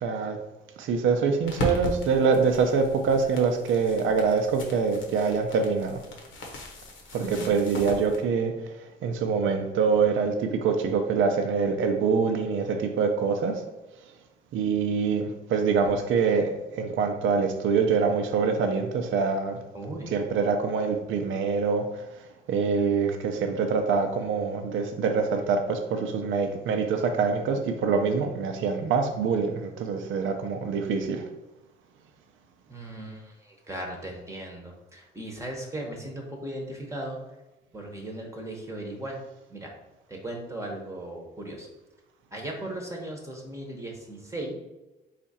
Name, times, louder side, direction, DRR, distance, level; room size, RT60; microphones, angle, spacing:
voice 1, 0.0-0.4 0.8-6.0 7.1-8.5 9.0-13.6 14.5-19.6 20.1-22.1 22.5-31.3, right 5 dB, 80° right, 6 dB, 0.6 m, -25 dB
sound 1, 1.5-8.2, left 1 dB, 80° left, 1.0 m, -37 dB
voice 2, 19.7-20.1 32.7-37.2 37.7-39.2 39.5-39.7 40.1-41.7 42.3-44.5, right 1 dB, 15° right, -1 dB, 0.9 m, -37 dB
4.2 x 2.5 x 4.1 m, 1.0 s
cardioid pair, 90°, 20 cm